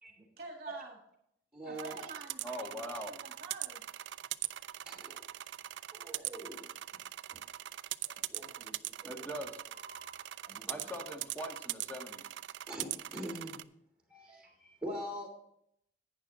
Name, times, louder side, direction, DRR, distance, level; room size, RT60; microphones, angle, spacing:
voice 1, 0.4-1.0 1.6-3.9, right 3 dB, 40° right, 2 dB, 1.7 m, -48 dB
voice 2, 1.5-2.0 4.9-5.2 5.9-6.6 7.3-7.4 8.3-9.3 9.8-10.9 12.7-13.6 14.1-15.3, right 1 dB, 5° right, -3 dB, 2.9 m, -44 dB
sound 1, 1.8-13.6, right 14 dB, 75° right, 0.3 m, -42 dB
voice 3, 2.4-3.1 9.0-9.6 10.7-12.3, equal, 10° left, 2 dB, 1.6 m, -41 dB
11.0 x 9.5 x 3.7 m, 0.74 s
head